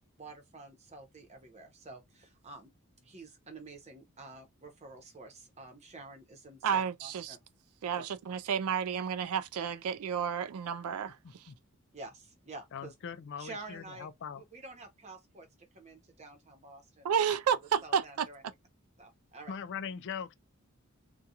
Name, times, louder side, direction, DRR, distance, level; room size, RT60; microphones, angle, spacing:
voice 1, 0.2-2.7 3.0-7.4 8.0-8.1 11.9-12.9 13.4-14.1 14.3-17.1 17.5-18.4 19.0-19.6, right 3 dB, 30° right, 0.8 m, -49 dB
voice 2, 6.6-7.4 7.8-11.2 17.0-18.3, right 7 dB, 90° right, 0.4 m, -31 dB
voice 3, 11.2-11.5 12.7-14.4 19.5-20.3, left 7 dB, 55° left, 0.4 m, -41 dB
2.4 x 2.2 x 2.8 m
head